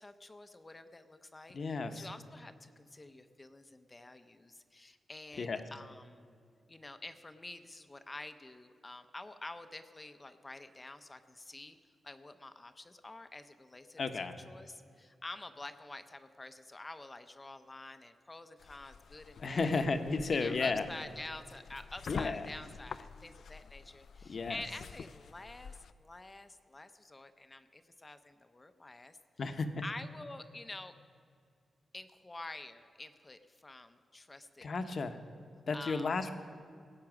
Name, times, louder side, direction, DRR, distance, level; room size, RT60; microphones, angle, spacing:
voice 1, 0.0-6.3 6.7-11.8 12.0-19.8 20.4-29.2 29.8-30.9 31.9-34.9 35.7-36.1, left 2 dB, 25° left, 10 dB, 0.6 m, -48 dB
voice 2, 1.5-2.1 5.4-5.6 14.0-14.4 19.4-20.9 22.1-22.5 24.3-24.6 29.4-29.7 34.6-35.2 35.7-36.3, left 4 dB, 55° left, 8 dB, 0.9 m, -33 dB
sound 1, 18.6-25.9, left 6 dB, 70° left, 0.4 m, -48 dB
16.5 x 8.5 x 6.0 m, 2.3 s
cardioid pair, 90°, 0 cm